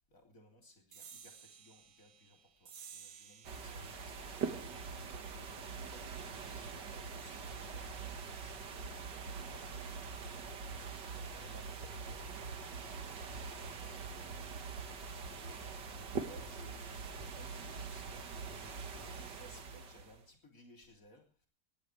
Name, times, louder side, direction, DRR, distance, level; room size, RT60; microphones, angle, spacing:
voice 1, 0.1-12.5 13.5-14.5 15.3-21.5, equal, 50° left, 4 dB, 3.8 m, -62 dB
sound 1, 0.9-7.8, right 7 dB, 65° right, 2.0 m, -58 dB
sound 2, 3.4-20.2, right 5 dB, 80° right, 2.2 m, -43 dB
18.5 x 16.0 x 3.3 m, 0.38 s
omnidirectional pair, 1.8 m